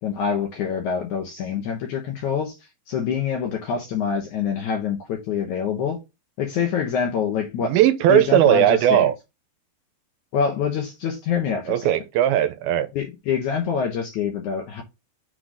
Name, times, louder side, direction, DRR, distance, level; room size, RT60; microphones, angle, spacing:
voice 1, 0.0-2.6 2.9-6.0 6.4-7.8 8.1-9.1 10.3-11.9 12.9-14.8, left 7 dB, 65° left, 2.0 m, -25 dB
voice 2, 7.6-9.1 11.7-12.9, right 11 dB, 85° right, 2.4 m, -18 dB
6.1 x 3.9 x 5.1 m
omnidirectional pair, 4.5 m